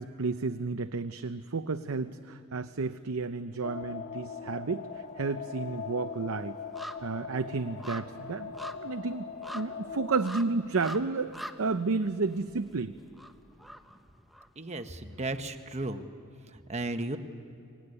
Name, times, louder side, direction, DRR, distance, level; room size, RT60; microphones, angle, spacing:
voice 1, 0.0-6.6 7.0-12.9, right 4 dB, 75° right, 10 dB, 0.7 m, -32 dB
sound 1, 3.6-10.1, left 6 dB, 45° left, 2.2 m, -41 dB
sound 2, 3.9-4.6 4.8-14.8 15.2-15.3, equal, ahead, 0.9 m, -46 dB
voice 2, 14.6-16.0 16.5-17.2, right 2 dB, 30° right, 8 dB, 1.1 m, -35 dB
23.5 x 20.0 x 9.8 m, 2.7 s
head